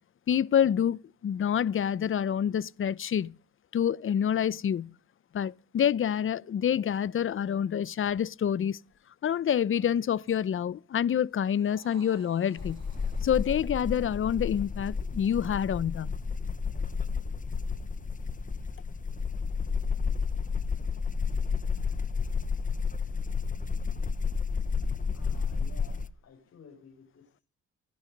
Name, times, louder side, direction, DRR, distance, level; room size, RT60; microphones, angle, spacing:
voice 1, 0.3-3.3 3.7-4.9 5.3-8.8 9.2-12.8 13.2-16.1, left 9 dB, 45° left, 0.7 m, -27 dB
sound 1, 11.3-15.9, right 7 dB, 60° right, 2.7 m, -58 dB
sound 2, 12.6-26.1, left 5 dB, 25° left, 1.1 m, -31 dB
voice 2, 25.1-27.4, left 6 dB, 65° left, 5.9 m, -54 dB
28.0 x 9.7 x 5.3 m
cardioid pair, 90°, 30 cm